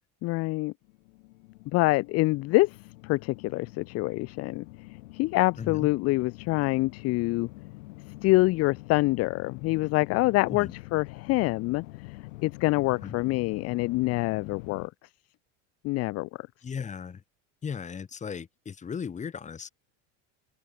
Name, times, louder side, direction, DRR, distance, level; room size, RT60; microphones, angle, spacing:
voice 1, 0.2-0.7 1.7-2.8 3.0-4.7 5.1-7.5 8.2-11.8 12.4-14.9 15.8-16.5, left 21 dB, 45° left, 0.7 m, -26 dB
sound 1, 0.8-14.9, left 22 dB, 90° left, 3.9 m, -45 dB
voice 2, 5.6-5.9 10.5-10.7 13.0-13.2 16.6-17.2 17.6-19.7, left 6 dB, 20° left, 3.2 m, -36 dB
cardioid pair, 150°, 36 cm